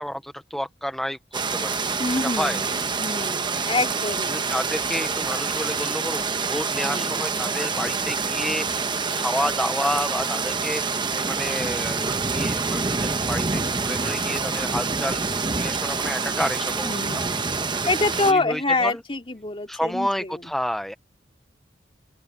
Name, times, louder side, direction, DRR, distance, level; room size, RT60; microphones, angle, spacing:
voice 1, 0.0-1.7 2.2-2.6 4.3-15.2 15.5-17.2 17.7-17.9 18.2-19.0 19.7-20.9, equal, ahead, 0.5 m, -30 dB
sound 1, 1.3-18.3, right 4 dB, 25° right, 0.9 m, -26 dB
voice 2, 2.0-4.4 6.8-7.3 7.8-8.1 16.8-20.5, left 2 dB, 30° left, 2.7 m, -27 dB
open air
head